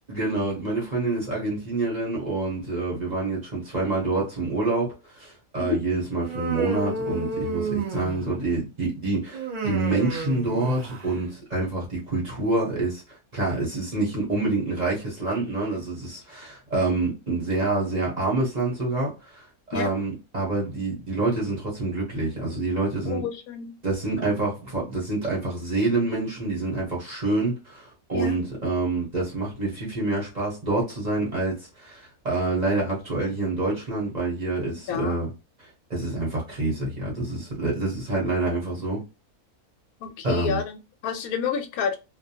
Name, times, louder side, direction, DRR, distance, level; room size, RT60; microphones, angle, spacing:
voice 1, 0.1-13.0 13.3-19.1 19.7-23.2 23.8-35.3 35.9-39.0 40.2-40.6, right 2 dB, 35° right, 0.9 m, -27 dB
Human voice, 6.2-8.5 9.3-11.2, right 3 dB, 60° right, 0.4 m, -31 dB
voice 2, 23.1-23.8 28.1-28.4 34.9-35.2 40.0-42.0, left 7 dB, 75° left, 1.0 m, -29 dB
2.6 x 2.1 x 2.7 m
omnidirectional pair, 1.6 m